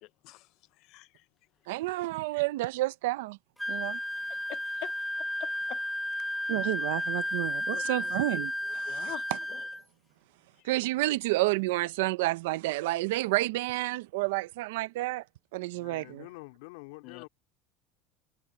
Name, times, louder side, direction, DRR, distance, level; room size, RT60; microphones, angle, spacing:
voice 1, 0.0-0.5 0.8-1.2 4.5-5.8 6.8-7.1 7.7-7.9 8.3-8.5 8.9-9.7 10.6-10.8 17.0-17.2, left 20 dB, 65° left, 0.8 m, -46 dB
voice 2, 1.7-3.4 3.7-4.0 6.5-9.1 10.6-15.2 15.5-16.3, right 19 dB, 85° right, 0.7 m, -30 dB
Wind instrument woodwind instrument, 3.6-9.8, left 1 dB, 5° left, 0.4 m, -33 dB
voice 3, 15.7-17.3, left 24 dB, 80° left, 3.0 m, -47 dB
supercardioid pair, 100°, 0 cm